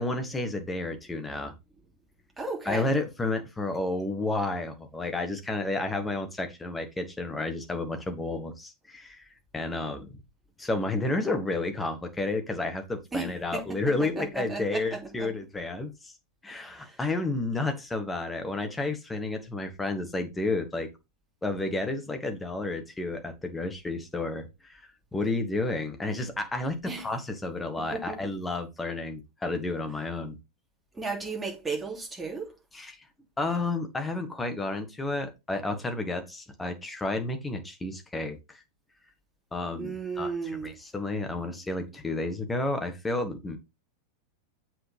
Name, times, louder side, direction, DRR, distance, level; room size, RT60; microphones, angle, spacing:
voice 1, 0.0-1.5 2.6-9.3 9.5-10.2 10.6-16.1 16.4-20.9 21.4-24.8 25.1-30.4 32.7-33.0 33.4-38.6 39.5-40.3 40.6-43.6, left 2 dB, 10° left, 1.5 m, -31 dB
voice 2, 2.4-2.9 13.1-15.3 16.7-17.0 26.8-27.1 27.9-28.2 30.9-32.5 39.8-40.7, right 4 dB, 10° right, 2.9 m, -35 dB
7.7 x 6.2 x 3.5 m
figure-of-eight pair, 90°, 0 cm